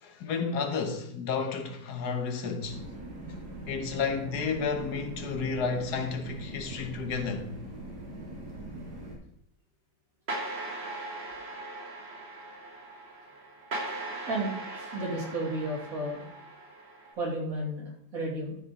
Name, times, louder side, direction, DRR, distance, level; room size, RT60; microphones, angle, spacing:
voice 1, 0.0-2.8 3.3-3.4 3.7-7.5, left 5 dB, 80° left, 1.6 m, -31 dB
sound 1, 2.6-9.2, right 1 dB, 85° right, 2.4 m, -42 dB
sound 2, 10.3-17.1, right 2 dB, 40° right, 1.6 m, -39 dB
voice 2, 14.3-16.2 17.2-18.6, right 1 dB, 60° right, 2.9 m, -33 dB
12.5 x 4.9 x 4.2 m
omnidirectional pair, 1.7 m